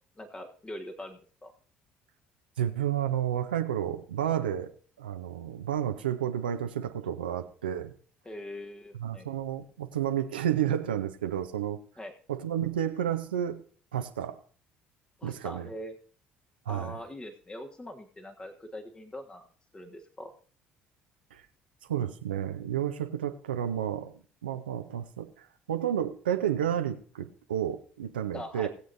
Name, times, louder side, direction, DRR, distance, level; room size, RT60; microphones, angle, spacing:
voice 1, 0.2-1.5 8.2-9.3 12.0-12.1 15.2-15.9 16.7-19.4 19.7-20.3 28.3-28.7, left 1 dB, 20° left, 4 dB, 1.4 m, -42 dB
voice 2, 2.6-4.7 5.0-7.9 9.0-11.8 12.3-13.6 13.9-14.4 15.2-15.7 16.7-17.0 21.3-21.4 21.9-28.7, right 10 dB, 90° right, 7 dB, 0.7 m, -31 dB
20.0 x 7.8 x 2.6 m, 0.43 s
hypercardioid pair, 55°, 5 cm